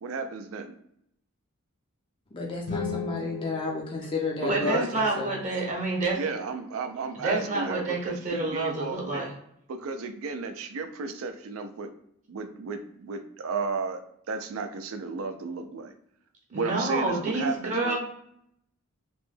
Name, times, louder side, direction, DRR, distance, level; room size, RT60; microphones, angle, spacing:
voice 1, 0.0-0.8 4.4-4.9 6.1-9.3 9.7-11.9 12.3-14.0 14.3-15.9 16.5-18.0, right 4 dB, 70° right, 8 dB, 0.4 m, -33 dB
voice 2, 2.3-5.3, left 3 dB, 25° left, -1 dB, 0.4 m, -32 dB
sound 1, 2.6-4.8, left 5 dB, 70° left, 0.7 m, -36 dB
voice 3, 4.5-6.2 7.2-9.3 16.5-18.0, right 2 dB, 35° right, -2 dB, 0.7 m, -28 dB
3.0 x 2.1 x 3.1 m, 0.72 s
head